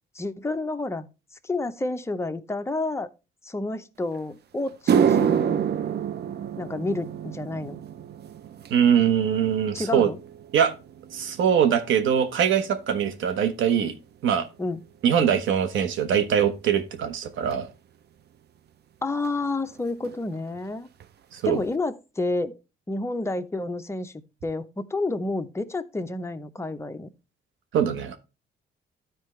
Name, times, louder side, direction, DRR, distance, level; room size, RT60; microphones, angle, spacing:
voice 1, 0.1-1.1 1.4-3.1 3.4-5.7 6.6-7.8 9.7-10.2 14.6-14.8 19.0-20.9 21.5-22.6 22.9-24.1 24.4-27.1, left 2 dB, 15° left, 0.7 m, -29 dB
sound 1, 4.1-4.2 4.7-13.2 13.5-13.9 14.7-14.8 17.5-17.6 19.2-19.3 19.5-19.8 20.0-20.6 21.0-21.1 21.6-21.7, right 8 dB, 55° right, 0.6 m, -28 dB
voice 2, 8.7-10.1 10.5-10.7 11.1-13.9 14.2-14.5 15.0-17.7 21.3-21.6 27.7-28.2, right 8 dB, 75° right, 1.1 m, -22 dB
13.0 x 4.6 x 3.2 m
cardioid pair, 90°, 20 cm